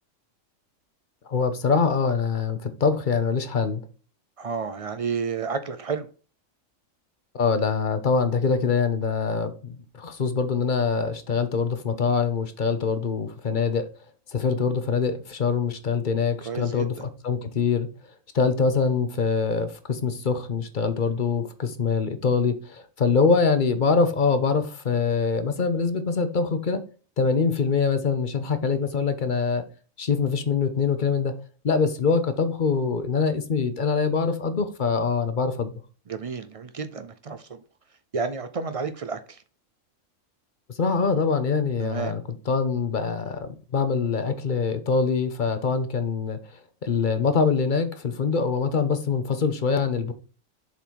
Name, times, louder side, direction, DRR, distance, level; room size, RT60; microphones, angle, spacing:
voice 1, 1.3-3.8 7.3-13.9 14.3-17.9 18.3-26.8 27.2-29.6 30.0-31.3 31.6-35.7 40.8-42.2 42.5-46.4 46.8-50.1, left 5 dB, 45° left, 0.8 m, -24 dB
voice 2, 4.4-6.1 16.4-16.9 36.1-37.6 38.1-39.4 41.8-42.1, right 5 dB, 70° right, 0.3 m, -31 dB
7.0 x 3.9 x 4.6 m
omnidirectional pair, 1.4 m